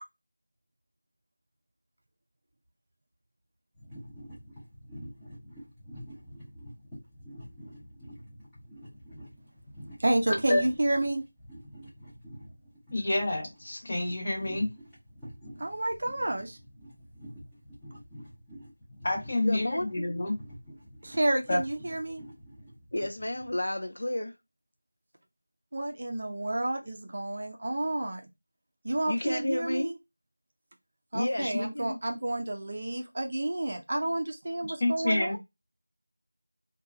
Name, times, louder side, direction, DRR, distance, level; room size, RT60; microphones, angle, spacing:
sound 1, 3.7-23.5, equal, 5° left, 0.7 m, -48 dB
voice 1, 10.0-11.2 15.6-16.6 21.0-22.2 25.7-28.3 28.8-30.0 31.1-35.4, right 1 dB, 40° right, 0.4 m, -30 dB
voice 2, 12.9-14.7 19.0-20.4 21.5-21.6 31.4-31.5 34.8-35.4, left 2 dB, 30° left, 1.0 m, -28 dB
voice 3, 19.4-20.2 22.9-24.3 29.1-29.9 31.1-32.0, left 1 dB, 60° left, 0.4 m, -32 dB
2.8 x 2.2 x 2.5 m
figure-of-eight pair, 175°, 0 cm